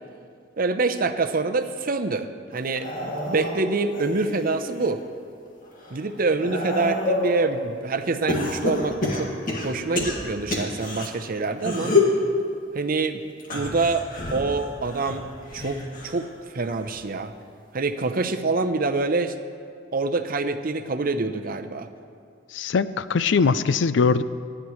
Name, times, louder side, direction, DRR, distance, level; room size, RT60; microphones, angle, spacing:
voice 1, 0.6-2.9 3.3-5.0 5.9-9.3 9.6-12.0 12.7-13.2 13.5-14.1 14.3-15.3 15.5-16.3 16.5-17.3 17.7-19.4 19.9-21.9, right 3 dB, 50° right, 8 dB, 0.7 m, -26 dB
sound 1, 2.6-4.9 5.4-7.4 8.3-11.1 11.6-12.2 13.4-16.3 16.6-17.1 18.2-18.3, left 2 dB, 50° left, 2.0 m, -28 dB
voice 2, 22.5-24.2, left 5 dB, 70° left, 14 dB, 0.4 m, -21 dB
27.0 x 9.9 x 3.2 m, 2.2 s
head